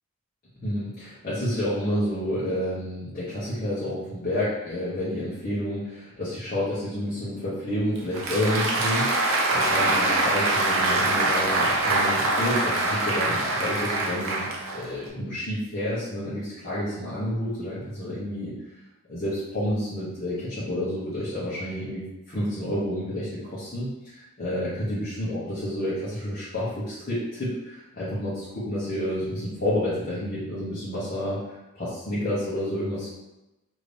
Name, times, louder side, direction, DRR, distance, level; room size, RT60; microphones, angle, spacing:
voice 1, 0.6-14.4 14.7-18.5 19.1-31.4 31.7-33.1, left 1 dB, 40° left, -10 dB, 0.9 m, -29 dB
Applause, 8.0-15.1, right 2 dB, 65° right, 0.5 m, -24 dB
2.9 x 2.6 x 3.3 m, 0.97 s
head